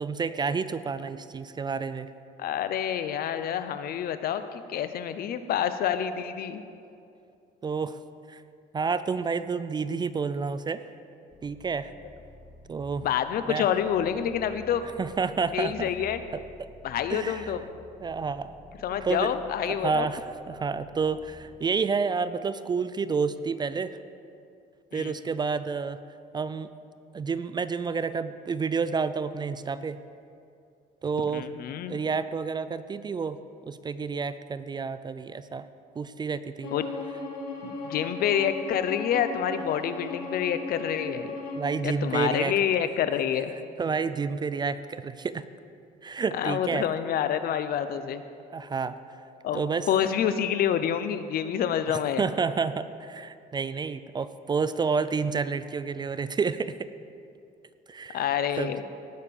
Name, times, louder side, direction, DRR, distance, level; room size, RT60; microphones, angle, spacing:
voice 1, 0.0-2.1 7.6-8.0 8.3-8.4 8.7-10.8 11.4-11.9 12.7-13.0 13.5-13.7 15.0-15.9 17.1-17.5 18.0-18.6 19.0-19.3 19.7-24.0 24.9-26.0 26.3-26.7 27.1-30.0 31.0-31.5 31.9-33.4 33.7-35.7 36.0-36.7 41.6-42.5 43.8-45.4 46.0-46.9 48.5-49.0 49.5-49.9 51.9-56.9 57.9-58.3 58.6-58.7, right 5 dB, 25° right, 13 dB, 0.4 m, -29 dB
voice 2, 2.4-6.6 13.0-14.8 15.5-16.2 16.8-17.6 18.8-20.1 24.9-25.1 31.3-32.0 36.7-36.9 37.6-41.4 41.8-43.5 46.3-48.2 49.4-52.2 58.1-58.8, left 9 dB, 60° left, 11 dB, 0.7 m, -28 dB
sound 1, 11.3-21.6, left 1 dB, 20° left, 1.5 m, -51 dB
Bowed string instrument, 36.6-41.7, left 3 dB, 85° left, 2.4 m, -37 dB
18.5 x 6.6 x 5.3 m, 2.5 s
cardioid pair, 110°, 17 cm